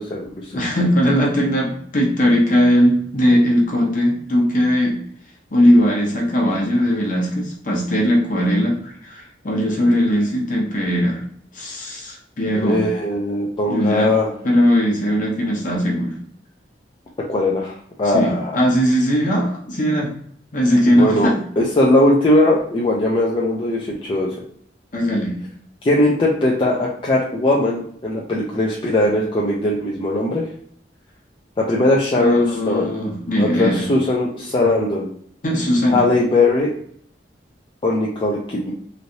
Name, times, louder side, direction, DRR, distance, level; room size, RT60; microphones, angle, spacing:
voice 1, 0.0-0.5 12.6-14.3 17.3-17.7 18.0-18.6 20.9-24.3 25.8-30.4 31.6-32.9 33.3-35.1 35.9-36.7 37.8-38.7, left 1 dB, 30° left, -4 dB, 0.4 m, -19 dB
voice 2, 0.5-5.0 5.5-8.7 9.0-11.2 11.5-12.8 13.7-14.1 14.4-16.1 18.1-20.1 20.5-21.4 24.9-25.4 32.2-33.9 35.4-36.0, equal, 50° left, -2 dB, 0.9 m, -19 dB
3.1 x 2.6 x 2.7 m, 0.62 s
head